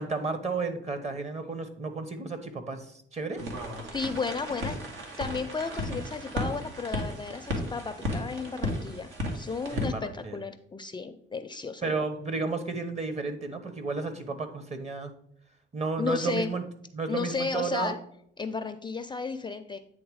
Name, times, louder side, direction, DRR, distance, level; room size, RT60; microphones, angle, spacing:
voice 1, 0.0-3.4 9.7-10.4 11.8-15.1 15.7-16.6 16.9-18.0, right 4 dB, 35° right, 9 dB, 1.1 m, -32 dB
sound 1, 3.4-9.9, left 1 dB, 80° right, 1.7 m, -34 dB
voice 2, 3.9-4.8 5.2-11.9 16.0-16.5 17.1-18.0 18.4-19.8, left 4 dB, 25° left, 9 dB, 0.4 m, -33 dB
8.8 x 3.4 x 4.8 m, 0.69 s
cardioid pair, 90°, 20 cm